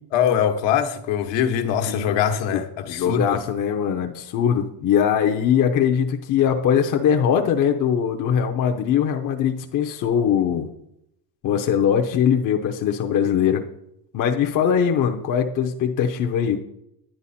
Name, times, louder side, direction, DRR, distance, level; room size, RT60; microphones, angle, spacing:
voice 1, 0.1-3.4, left 8 dB, 70° left, 1.4 m, -22 dB
voice 2, 1.9-2.2 2.5-2.6 2.9-10.7 11.4-13.6 14.1-16.6, left 8 dB, 45° left, 0.8 m, -21 dB
10.0 x 10.0 x 4.2 m
cardioid pair, 165°, 45 cm